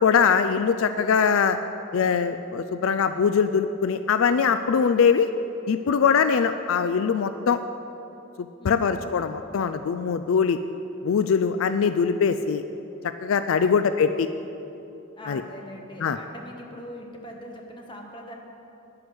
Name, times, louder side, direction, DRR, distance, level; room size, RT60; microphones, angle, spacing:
voice 1, 0.0-1.6 1.9-5.3 5.7-7.6 8.6-10.6 11.0-12.6 13.2-14.3 15.3-15.4 16.0-16.2, left 6 dB, 75° left, 10 dB, 0.4 m, -22 dB
voice 2, 8.6-9.3 11.3-11.9 13.6-14.0 15.2-18.3, equal, 20° left, 1 dB, 1.2 m, -42 dB
9.8 x 9.5 x 6.2 m, 2.8 s
head